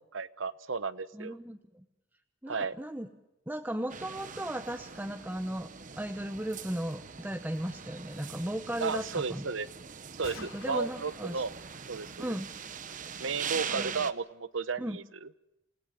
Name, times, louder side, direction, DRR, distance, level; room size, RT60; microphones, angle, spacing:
voice 1, 0.1-1.4 2.5-2.8 8.8-9.7 10.2-11.5 11.9-12.4 13.2-15.3, right 4 dB, 70° right, 15 dB, 0.9 m, -34 dB
voice 2, 1.1-1.8 2.4-3.1 3.5-5.7 6.0-9.5 10.4-11.4 12.2-12.5 13.7-13.9 14.8-15.0, right 1 dB, 10° right, 5 dB, 0.9 m, -36 dB
sound 1, 3.9-14.1, right 7 dB, 40° right, 0.9 m, -42 dB
sound 2, 6.5-6.6 6.8-7.0 7.2-7.8 10.2-13.6, left 4 dB, 80° left, 3.8 m, -53 dB
28.5 x 17.5 x 6.4 m, 0.93 s
head